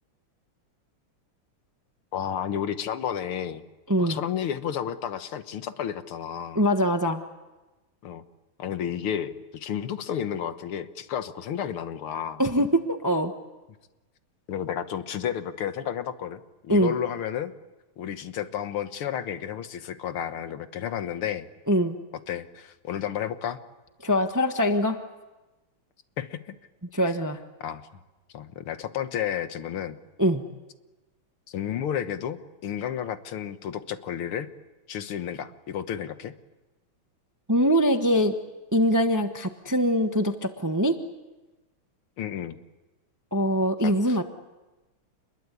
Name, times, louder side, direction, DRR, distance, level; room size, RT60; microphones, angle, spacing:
voice 1, 2.1-3.6 4.0-6.6 8.0-8.2 8.6-12.4 14.5-17.5 18.0-21.5 22.3-23.6 26.2-26.4 27.6-27.8 28.3-30.0 31.5-34.5 34.9-36.3 42.2-42.6 43.8-44.2, left 9 dB, 75° left, 10 dB, 2.0 m, -32 dB
voice 2, 3.9-4.2 6.5-7.2 12.4-13.3 16.7-16.9 21.7-22.0 24.0-25.0 26.9-27.4 30.2-30.4 37.5-38.3 38.7-41.0 43.3-44.2, equal, 15° right, 7 dB, 0.8 m, -23 dB
28.0 x 21.5 x 8.3 m, 1.1 s
omnidirectional pair, 2.4 m